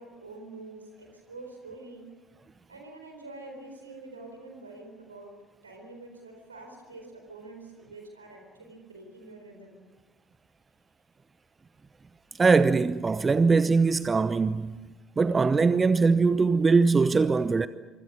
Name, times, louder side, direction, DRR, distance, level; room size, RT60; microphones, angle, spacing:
voice 1, 0.0-2.1 2.7-5.4 5.6-9.8, right 2 dB, 80° right, 4.1 m, -46 dB
voice 2, 12.4-14.8 15.2-17.7, right 4 dB, 25° right, 0.8 m, -22 dB
26.5 x 24.5 x 6.7 m
figure-of-eight pair, 55°, 0 cm